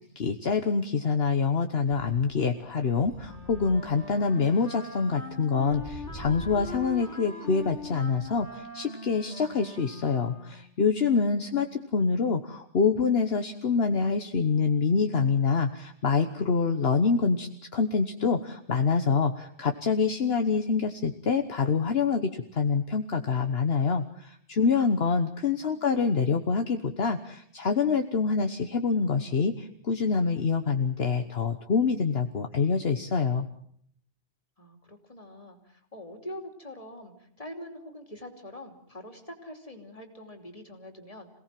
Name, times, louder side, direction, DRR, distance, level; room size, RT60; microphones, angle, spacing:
voice 1, 0.1-33.5, left 5 dB, 60° left, 6 dB, 1.4 m, -26 dB
sound 1, 1.9-8.6, right 1 dB, 90° right, 7.3 m, -47 dB
Wind instrument woodwind instrument, 3.2-10.7, left 3 dB, 85° left, 2.5 m, -42 dB
voice 2, 11.4-12.0 25.5-25.9 34.6-41.3, left 1 dB, 30° left, 4 dB, 3.2 m, -44 dB
27.0 x 18.0 x 7.6 m, 0.65 s
omnidirectional pair, 1.1 m